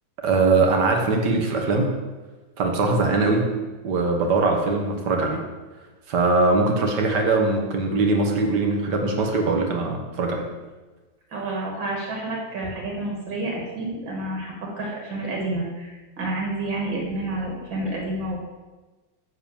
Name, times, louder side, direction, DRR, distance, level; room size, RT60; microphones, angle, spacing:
voice 1, 0.2-2.0 2.6-3.5 3.8-5.4 6.1-10.5, right 3 dB, 65° right, 3 dB, 1.8 m, -21 dB
voice 2, 11.3-18.4, right 2 dB, 85° right, -2 dB, 2.5 m, -29 dB
9.6 x 4.4 x 7.0 m, 1.2 s
omnidirectional pair, 2.0 m